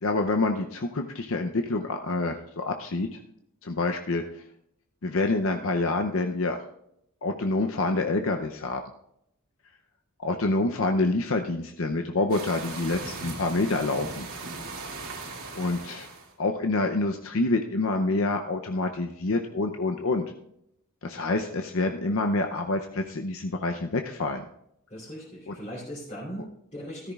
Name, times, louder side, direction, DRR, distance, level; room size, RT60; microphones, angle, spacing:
voice 1, 0.0-3.2 3.6-4.2 5.0-6.6 7.2-8.8 10.2-14.3 15.5-16.1 16.4-20.2 21.0-24.5 25.5-25.6, left 2 dB, 65° left, 4 dB, 0.7 m, -27 dB
sound 1, 12.3-16.3, right 3 dB, 80° right, 2.4 m, -38 dB
voice 2, 24.9-27.1, equal, 30° left, -9 dB, 3.3 m, -39 dB
14.0 x 13.5 x 2.4 m, 0.76 s
head